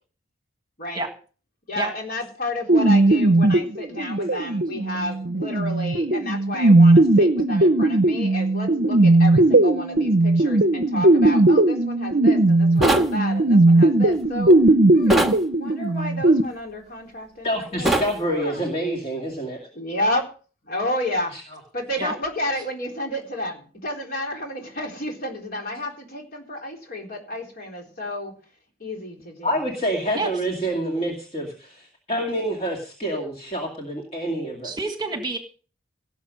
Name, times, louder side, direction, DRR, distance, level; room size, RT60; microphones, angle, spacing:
voice 1, 1.7-14.6 14.9-15.3 15.6-18.6 19.7-20.3 20.7-21.4 21.7-28.3 28.8-29.5, left 1 dB, 45° left, 1 dB, 3.9 m, -31 dB
sound 1, 2.7-16.4, right 2 dB, 50° right, 0.7 m, -18 dB
sound 2, 12.8-13.1 15.1-15.4 17.9-18.1, right 1 dB, ahead, 1.5 m, -20 dB
voice 2, 17.4-19.6 21.3-21.4 29.4-34.7, right 1 dB, 30° left, 0 dB, 2.3 m, -27 dB
voice 3, 34.6-35.4, right 3 dB, 20° right, 5 dB, 1.6 m, -27 dB
18.0 x 7.1 x 6.3 m, 0.40 s
head